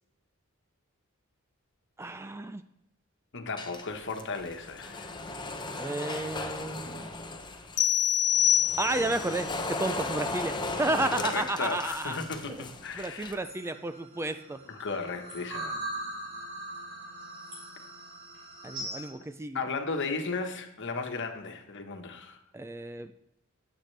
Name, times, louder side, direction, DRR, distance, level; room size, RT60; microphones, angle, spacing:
voice 1, 2.0-2.6 5.8-7.2 8.8-12.2 13.0-14.6 18.6-19.6 22.5-23.1, right 2 dB, 10° right, 10 dB, 0.4 m, -32 dB
voice 2, 3.3-5.2 11.2-13.4 14.7-15.8 19.5-22.4, left 4 dB, 55° left, 5 dB, 1.3 m, -35 dB
sound 1, 3.6-7.8 8.3-13.3, left 2 dB, 20° left, 0.8 m, -37 dB
sound 2, 7.8-9.3, left 11 dB, 85° left, 0.6 m, -25 dB
sound 3, 13.3-19.1, right 1 dB, 60° right, 5.0 m, -40 dB
16.5 x 8.2 x 3.3 m, 0.83 s
head